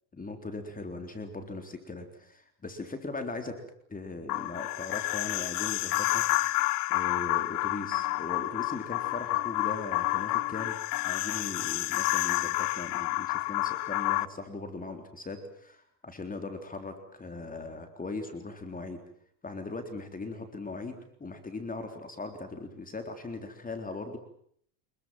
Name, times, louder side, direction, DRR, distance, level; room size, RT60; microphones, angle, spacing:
voice 1, 0.1-3.6 3.9-19.0 19.4-24.2, left 3 dB, 20° left, 6 dB, 3.8 m, -39 dB
sound 1, 4.3-14.3, left 19 dB, 85° left, 1.1 m, -29 dB
26.5 x 22.5 x 7.7 m, 0.65 s
supercardioid pair, 110°, 45 cm